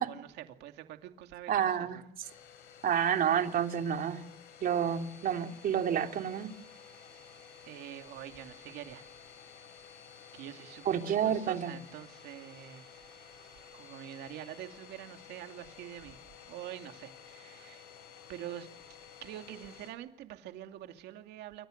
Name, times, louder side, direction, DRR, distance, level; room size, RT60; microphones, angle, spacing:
voice 1, 0.0-2.0 7.6-9.1 10.3-12.9 13.7-16.2 16.5-17.9 18.3-18.7 19.2-21.7, right 12 dB, 85° right, 2.6 m, -45 dB
voice 2, 1.5-2.0 2.8-4.2 4.6-6.5 10.8-11.7, right 9 dB, 60° right, 3.3 m, -29 dB
Domestic sounds home sounds, 2.2-19.9, left 7 dB, 80° left, 7.6 m, -53 dB
29.0 x 25.5 x 6.6 m
cardioid pair, 110°, 17 cm